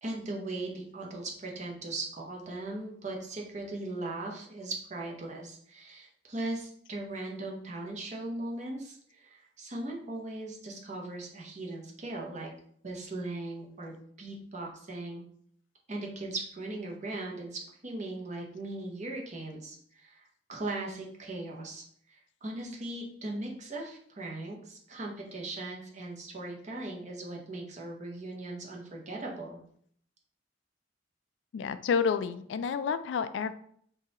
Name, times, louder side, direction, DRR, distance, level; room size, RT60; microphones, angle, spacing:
voice 1, 0.0-12.5 12.8-15.2 15.9-29.6, right 2 dB, 40° right, -1 dB, 0.8 m, -39 dB
voice 2, 31.5-33.5, left 6 dB, 80° left, 12 dB, 0.3 m, -29 dB
3.7 x 2.8 x 4.2 m, 0.63 s
head